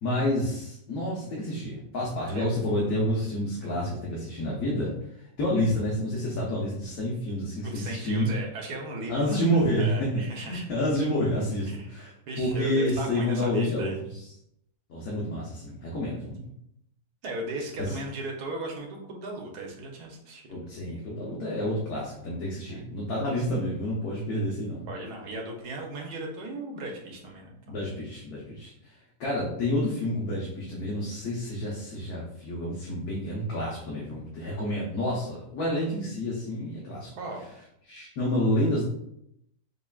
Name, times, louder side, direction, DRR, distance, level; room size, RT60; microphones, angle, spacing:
voice 1, 0.0-8.3 9.1-10.2 10.5-14.3 14.9-16.5 17.8-17.9 20.5-24.9 27.7-37.1 37.9-38.8, left 1 dB, 65° left, -5 dB, 1.3 m, -29 dB
voice 2, 7.6-9.5 9.8-10.7 11.7-11.9 12.3-14.0 17.2-20.6 22.7-22.8 24.9-27.8 37.2-37.5, right 2 dB, 70° right, 0 dB, 1.3 m, -37 dB
5.4 x 2.4 x 2.3 m, 0.77 s
omnidirectional pair, 1.8 m